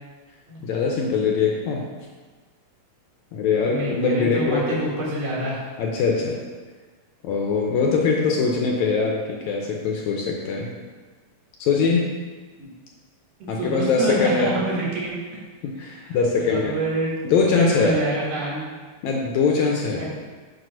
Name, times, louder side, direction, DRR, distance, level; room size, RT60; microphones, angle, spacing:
voice 1, 0.6-1.9 3.3-4.8 5.8-6.4 7.2-10.7 11.6-12.1 13.5-14.5 15.6-16.8 17.2-18.0 19.0-20.1, left 4 dB, 75° left, -1 dB, 1.8 m, -22 dB
voice 2, 3.6-5.6 12.6-12.8 13.4-15.1 15.8-16.2 16.5-18.7 20.0-20.1, right 2 dB, 75° right, -5 dB, 3.1 m, -27 dB
7.5 x 3.0 x 6.1 m, 1.4 s
omnidirectional pair, 3.8 m